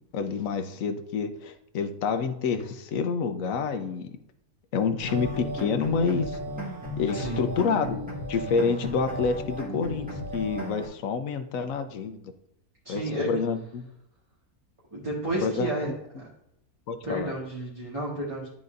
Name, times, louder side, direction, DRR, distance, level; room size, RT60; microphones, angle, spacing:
voice 1, 0.1-4.1 4.7-6.4 7.0-8.0 8.3-10.1 10.3-12.3 12.9-13.9 15.4-15.7 16.9-17.3, left 5 dB, 65° left, 8 dB, 1.1 m, -28 dB
sound 1, 5.0-10.9, equal, 5° right, 1.6 m, -34 dB
voice 2, 7.1-7.5 12.8-13.3 14.9-15.9 16.1-16.3 17.0-18.5, right 1 dB, 20° right, -6 dB, 1.5 m, -31 dB
11.5 x 4.0 x 2.5 m, 0.78 s
omnidirectional pair, 1.6 m